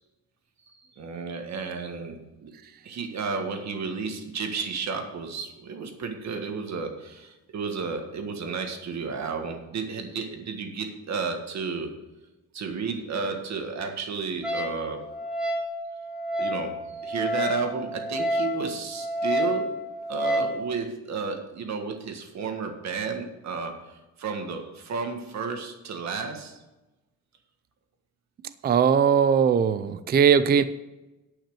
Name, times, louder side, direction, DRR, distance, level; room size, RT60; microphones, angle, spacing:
voice 1, 1.0-2.5 2.8-11.9 12.5-15.0 16.4-19.7 20.1-23.7 24.2-26.6, right 5 dB, 55° right, 4 dB, 1.7 m, -32 dB
Wind instrument woodwind instrument, 14.4-20.6, equal, ahead, 1.2 m, -29 dB
voice 2, 28.6-30.6, right 7 dB, 30° right, 14 dB, 0.4 m, -20 dB
10.0 x 5.8 x 7.0 m, 1.0 s
cardioid pair, 165°, 34 cm